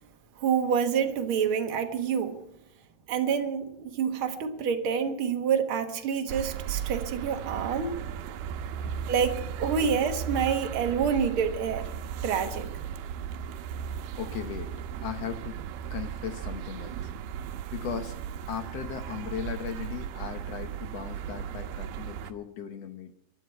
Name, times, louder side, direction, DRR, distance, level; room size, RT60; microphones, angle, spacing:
voice 1, 0.4-2.4 3.1-7.9 9.1-11.9 12.2-12.7, right 7 dB, 55° right, 1.5 m, -27 dB
sound 1, 6.3-22.3, right 8 dB, 85° right, 2.6 m, -36 dB
voice 2, 8.4-9.1 9.8-9.9 14.2-14.7 15.0-15.6 15.9-17.0 17.7-18.2 18.5-23.2, left 8 dB, 75° left, 1.5 m, -37 dB
24.0 x 11.5 x 4.6 m
omnidirectional pair, 4.3 m